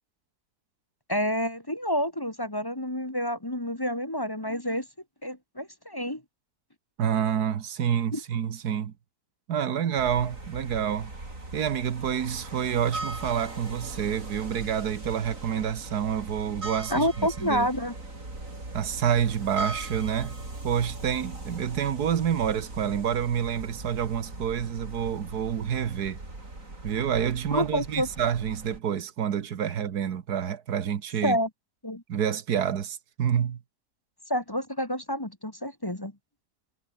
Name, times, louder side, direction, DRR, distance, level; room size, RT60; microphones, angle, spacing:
voice 1, 1.1-4.9 5.2-6.2 8.1-8.2 16.9-17.9 27.5-28.1 31.2-31.5 31.8-32.0 34.3-36.1, equal, 15° left, 1.7 m, -28 dB
voice 2, 7.0-8.9 9.5-11.1 11.5-17.7 18.7-20.3 20.6-26.2 26.8-31.4 32.1-33.6, right 8 dB, 90° right, 1.8 m, -28 dB
sound 1, 9.9-28.8, right 2 dB, 55° right, 6.0 m, -40 dB
omnidirectional pair, 1.6 m